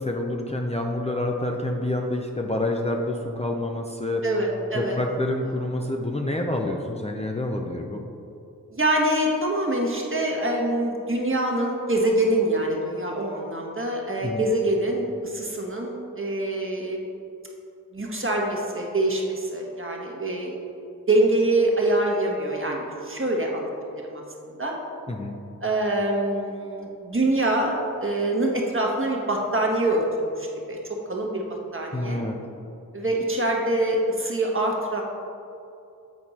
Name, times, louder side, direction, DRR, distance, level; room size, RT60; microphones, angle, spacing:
voice 1, 0.0-4.2 4.7-8.0 14.2-14.5 25.1-25.4 31.9-32.4, left 1 dB, 20° left, 1 dB, 0.6 m, -28 dB
voice 2, 4.2-5.0 8.7-17.0 17.9-20.6 21.1-24.7 25.6-30.8 31.0-32.2 32.9-35.0, right 1 dB, 35° right, -1 dB, 1.4 m, -25 dB
8.5 x 4.4 x 4.2 m, 2.7 s
cardioid pair, 40°, 34 cm